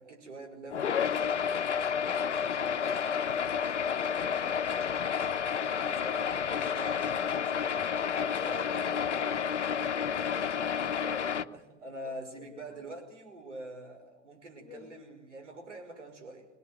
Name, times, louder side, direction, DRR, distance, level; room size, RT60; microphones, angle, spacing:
voice 1, 0.0-1.4 2.1-3.2 5.8-9.7 11.0-16.5, right 1 dB, 80° right, 3 dB, 5.7 m, -45 dB
sound 1, 0.7-11.4, left 7 dB, 75° left, 0.9 m, -30 dB
voice 2, 2.2-6.7 8.3-8.6 9.8-10.8 11.1-11.5 12.0-12.8 14.6-14.8, left 6 dB, 20° left, 5 dB, 4.8 m, -51 dB
24.5 x 19.0 x 9.4 m, 1.0 s
figure-of-eight pair, 85°, 35 cm